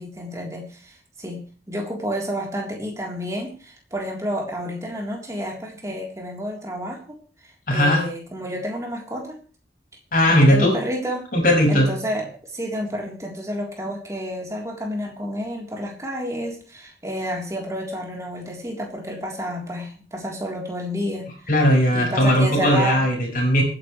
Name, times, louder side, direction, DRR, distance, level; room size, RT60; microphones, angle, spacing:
voice 1, 0.0-7.2 7.4-9.4 10.3-11.3 11.7-21.3 21.9-23.1, equal, 20° right, 0 dB, 3.7 m, -30 dB
voice 2, 7.7-8.0 10.1-10.7 11.3-11.9 21.5-23.6, equal, 50° left, 1 dB, 5.9 m, -18 dB
26.0 x 10.0 x 3.3 m, 0.38 s
head